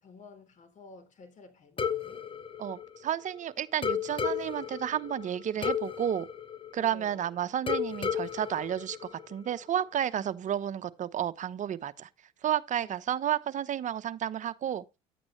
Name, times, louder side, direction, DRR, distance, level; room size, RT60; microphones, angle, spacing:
voice 1, 0.0-2.3 6.8-7.2 10.2-10.3 12.8-13.0, left 3 dB, 50° left, 3.6 m, -52 dB
sound 1, 1.8-3.4 3.8-7.2 7.7-9.6, left 7 dB, 30° left, 1.3 m, -34 dB
voice 2, 2.6-6.3 6.7-12.1 12.4-14.8, right 10 dB, 50° right, 0.9 m, -32 dB
11.0 x 8.7 x 3.2 m
supercardioid pair, 70°, 17 cm